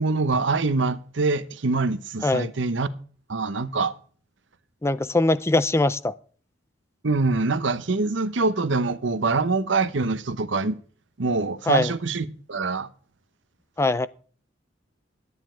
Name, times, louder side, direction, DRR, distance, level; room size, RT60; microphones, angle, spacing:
voice 1, 0.0-2.9 3.3-3.9 7.0-10.8 11.2-12.9, right 3 dB, 70° right, 0.9 m, -24 dB
voice 2, 4.8-6.1 11.7-11.9 13.8-14.1, left 2 dB, 15° left, 0.4 m, -22 dB
11.5 x 9.7 x 4.5 m
head